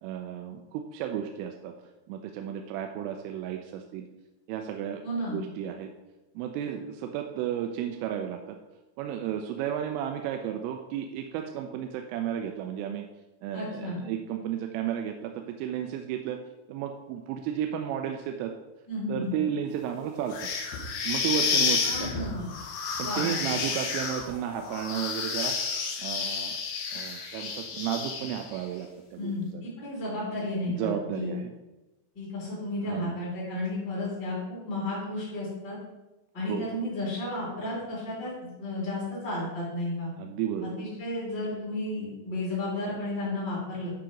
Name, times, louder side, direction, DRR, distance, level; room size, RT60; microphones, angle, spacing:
voice 1, 0.0-1.7 2.1-4.1 4.5-5.9 6.4-8.6 9.0-13.1 13.4-16.4 16.7-18.5 19.1-20.5 21.0-22.1 23.0-25.6 26.0-26.6 26.9-29.6 30.7-31.5 32.8-33.1 36.4-36.7 40.2-40.9, right 9 dB, 90° right, 4 dB, 3.2 m, -33 dB
voice 2, 5.0-5.4 13.5-14.0 18.9-19.3 21.8-22.5 23.0-23.5 29.2-31.4 32.1-35.8 36.3-40.1 40.8-43.9, left 1 dB, 25° left, -8 dB, 2.8 m, -33 dB
sound 1, 20.3-28.6, left 5 dB, 75° left, 3.4 m, -30 dB
10.5 x 4.9 x 5.1 m, 1.0 s
omnidirectional pair, 5.6 m